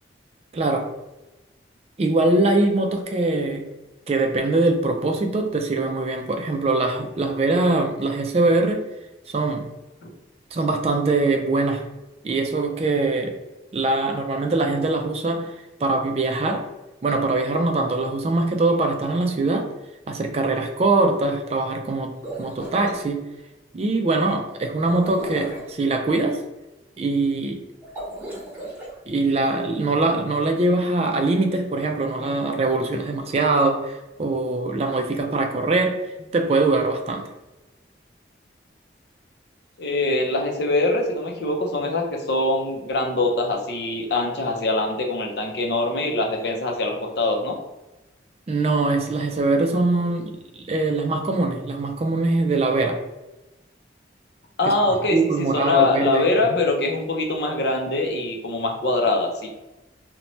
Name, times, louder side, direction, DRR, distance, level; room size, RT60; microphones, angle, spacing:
voice 1, 0.5-0.9 2.0-3.7 4.1-8.9 9.3-9.6 10.5-11.9 12.2-13.4 13.7-16.7 17.0-19.7 20.1-23.3 23.7-26.4 27.0-27.6 29.1-37.3 48.5-53.0 54.6-54.7 55.1-56.2 56.5-56.6, right 2 dB, 35° right, 4 dB, 0.3 m, -22 dB
sound 1, 22.1-23.0 24.8-25.7 27.8-28.9, right 1 dB, 10° right, 1.2 m, -35 dB
voice 2, 39.8-47.6 54.6-59.5, left 2 dB, 65° left, 2 dB, 0.5 m, -23 dB
2.6 x 2.1 x 3.0 m, 1.0 s
head